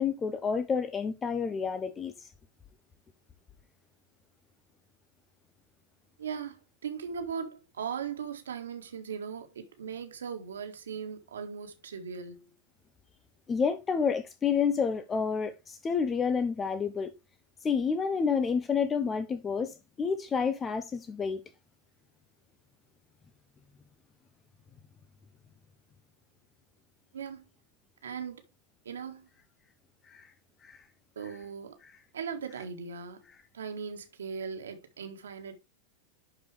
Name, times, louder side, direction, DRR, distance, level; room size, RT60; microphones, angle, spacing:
voice 1, 0.0-2.3 13.5-17.1 17.6-21.4 30.1-30.3 30.6-30.8 31.8-31.9, left 6 dB, 20° left, 0.8 m, -29 dB
voice 2, 6.2-12.5 27.1-27.5 28.0-28.4 28.9-29.3 31.2-31.8 32.1-33.3 33.5-35.6, right 6 dB, 65° right, 1.8 m, -39 dB
11.5 x 4.8 x 3.3 m
figure-of-eight pair, 90°, 0 cm